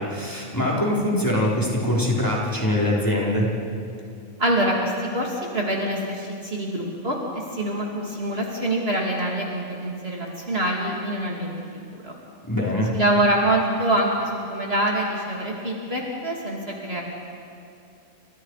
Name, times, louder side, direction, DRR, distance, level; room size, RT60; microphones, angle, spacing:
voice 1, 0.0-3.5 12.4-13.0, left 1 dB, 15° left, -5 dB, 4.9 m, -23 dB
voice 2, 4.4-11.5 12.0-12.2 12.9-17.0, right 1 dB, 45° right, -2 dB, 3.1 m, -25 dB
30.0 x 26.5 x 5.0 m, 2.5 s
omnidirectional pair, 1.5 m